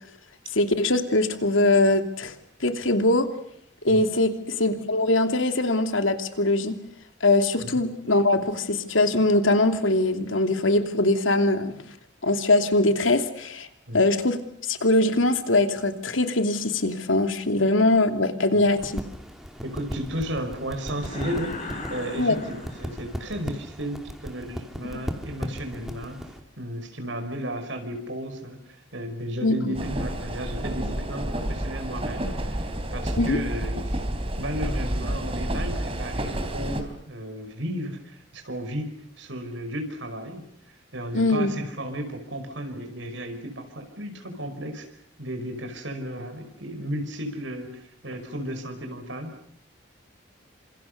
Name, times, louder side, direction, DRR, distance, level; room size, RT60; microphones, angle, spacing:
voice 1, 0.5-2.3 2.6-3.3 3.8-6.8 7.2-11.7 12.2-13.7 13.9-14.4 14.7-19.0 22.2-22.4 24.9-25.0 29.4-29.7 33.2-33.4 41.1-41.5, left 2 dB, 80° left, 7 dB, 2.9 m, -22 dB
sound 1, 18.7-26.4, equal, ahead, 2.8 m, -37 dB
voice 2, 19.6-26.2 26.6-34.0 34.4-38.9 39.2-40.4 40.9-44.9 45.2-49.3, equal, 70° right, 6 dB, 5.4 m, -34 dB
sound 2, 21.0-23.3, left 2 dB, 35° left, 6.3 m, -37 dB
sound 3, 29.7-36.8, right 1 dB, 30° right, 3.8 m, -30 dB
29.0 x 27.0 x 6.8 m, 0.69 s
head